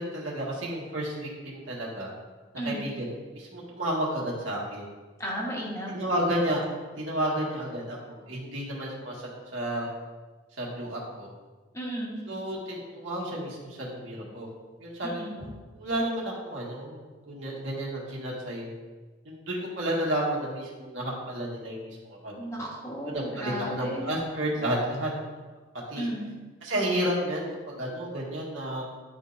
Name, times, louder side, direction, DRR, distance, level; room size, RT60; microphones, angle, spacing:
voice 1, 0.0-2.1 2.6-3.1 3.3-4.8 5.9-6.6 7.0-9.9 10.6-11.3 12.3-14.5 14.8-15.5 15.7-17.0 17.3-18.7 19.2-22.4 23.0-25.1 25.9-26.1 26.6-28.9, right 1 dB, 85° right, -4 dB, 1.8 m, -31 dB
voice 2, 2.6-2.9 5.2-6.0 11.7-12.2 15.0-15.3 22.4-24.0 26.0-26.3, equal, 15° left, -4 dB, 1.3 m, -34 dB
11.0 x 3.6 x 2.6 m, 1.3 s
head